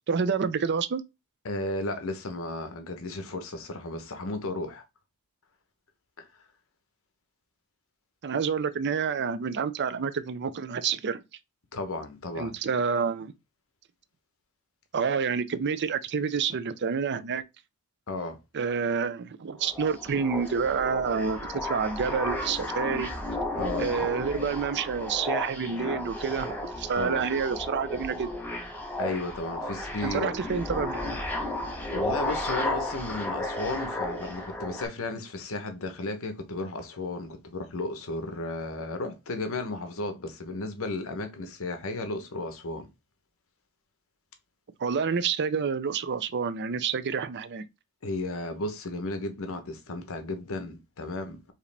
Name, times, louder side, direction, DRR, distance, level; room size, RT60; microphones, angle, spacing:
voice 1, 0.1-1.0 8.2-11.2 12.3-13.3 14.9-17.4 18.5-23.1 23.8-28.3 30.0-31.2 44.8-47.6, right 6 dB, 50° right, 0.5 m, -28 dB
voice 2, 1.4-4.8 6.2-6.3 11.7-12.6 18.1-18.4 23.5-23.9 26.9-27.2 29.0-30.4 31.9-42.9 48.0-51.5, left 2 dB, 65° left, 0.9 m, -34 dB
sound 1, 19.6-34.9, left 1 dB, 10° left, 1.0 m, -33 dB
4.8 x 2.9 x 3.3 m
head